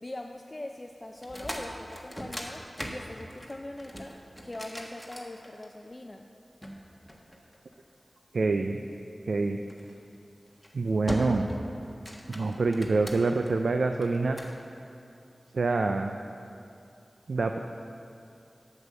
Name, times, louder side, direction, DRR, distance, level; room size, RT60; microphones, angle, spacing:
voice 1, 0.0-6.3, left 1 dB, 40° left, 3 dB, 0.5 m, -42 dB
sound 1, 1.2-5.9 6.6-7.9 9.7-10.0 10.5-10.7 11.1-11.6 11.9-13.5 14.0-14.6, equal, 5° left, 1.3 m, -39 dB
voice 2, 8.3-8.8 9.3-9.6 10.7-11.5 12.3-14.4 15.5-16.2 17.3-17.6, right 3 dB, 85° right, 5 dB, 0.3 m, -26 dB
8.1 x 7.1 x 6.5 m, 2.6 s
cardioid pair, 40°, 0 cm